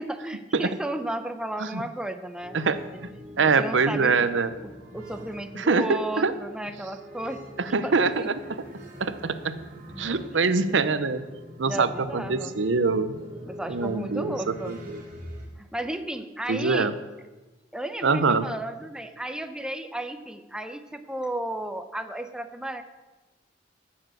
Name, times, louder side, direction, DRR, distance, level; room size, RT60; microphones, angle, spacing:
voice 1, 0.0-2.6 2.9-3.0 3.4-4.1 4.9-7.4 7.8-8.3 10.3-10.8 11.6-12.6 13.4-14.7 15.6-16.9 17.7-22.8, right 1 dB, 5° right, 8 dB, 0.7 m, -34 dB
sound 1, 2.4-15.5, equal, 50° right, 2.7 m, -43 dB
voice 2, 3.4-4.5 5.5-6.3 7.7-8.3 9.0-9.6 10.0-11.2 11.6-13.1 13.7-14.3 14.7-14.8 16.5-16.9 18.0-18.5, right 4 dB, 80° right, 12 dB, 0.7 m, -24 dB
14.0 x 7.3 x 6.3 m, 1.2 s
head